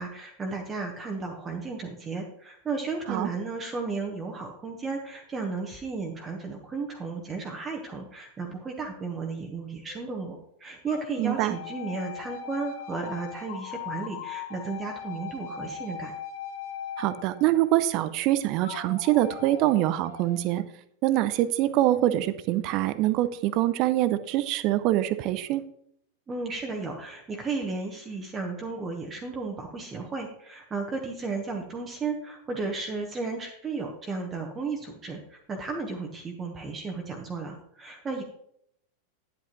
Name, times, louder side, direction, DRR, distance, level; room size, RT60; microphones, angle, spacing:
voice 1, 0.0-16.1 26.3-38.2, right 4 dB, 20° right, 2 dB, 1.1 m, -34 dB
sound 1, 9.8-10.4 10.9-18.0 18.6-20.4, left 8 dB, 50° left, 1.1 m, -40 dB
voice 2, 11.2-11.6 17.0-20.6 21.0-25.6, right 14 dB, 40° right, 13 dB, 0.6 m, -24 dB
10.0 x 8.1 x 3.0 m, 0.72 s
figure-of-eight pair, 90°, 0 cm